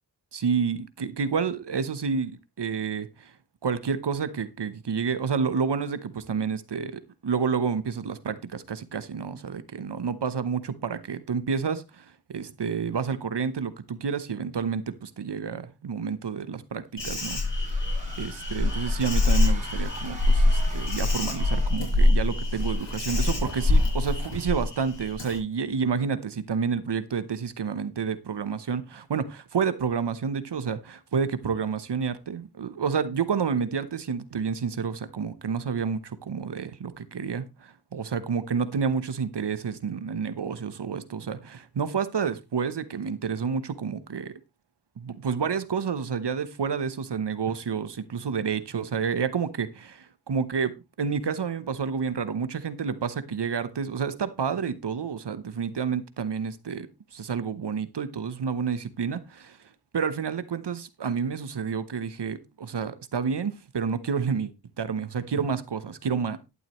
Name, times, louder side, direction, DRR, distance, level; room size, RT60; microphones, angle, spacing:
voice 1, 0.3-3.3 3.6-17.7 18.2-44.3 45.0-50.7 51.0-59.6 59.9-64.5 64.8-66.4, right 6 dB, 70° right, 1.0 m, -29 dB
Insect, 17.0-25.4, left 2 dB, 75° left, 7.1 m, -24 dB
sound 1, 17.0-21.9, right 1 dB, 15° right, 4.6 m, -44 dB
12.0 x 11.0 x 3.1 m
wide cardioid pair, 60°, 42 cm